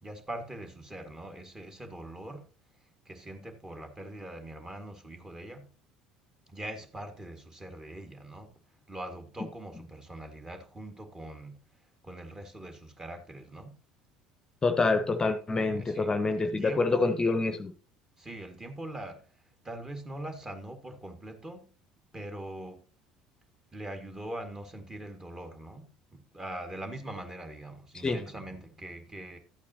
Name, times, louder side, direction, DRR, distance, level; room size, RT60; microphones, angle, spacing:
voice 1, 0.0-2.4 3.0-5.7 6.5-8.5 8.9-11.6 12.0-13.8 15.7-17.1 18.2-19.2 19.6-21.7 22.1-22.8 23.7-25.9 26.1-29.4, right 1 dB, 20° right, 1.8 m, -42 dB
voice 2, 14.6-17.7 27.9-28.2, left 3 dB, 25° left, 0.8 m, -27 dB
12.0 x 8.4 x 2.8 m
hypercardioid pair, 70°, 3 cm